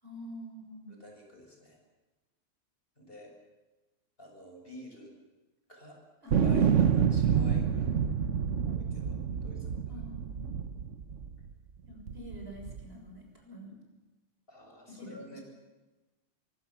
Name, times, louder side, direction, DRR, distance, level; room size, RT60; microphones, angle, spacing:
voice 1, 0.0-0.9 6.2-6.4 9.9-10.6 11.9-13.8 14.9-15.4, equal, 55° right, 1 dB, 7.1 m, -47 dB
voice 2, 0.9-1.8 3.0-3.3 4.2-5.1 5.7-6.0 6.4-7.9 8.6-10.0 14.5-15.4, equal, 50° left, 1 dB, 6.8 m, -50 dB
sound 1, 6.3-11.5 12.1-12.8, right 7 dB, 75° right, 1.5 m, -28 dB
24.5 x 23.0 x 7.3 m, 1.2 s
omnidirectional pair, 1.3 m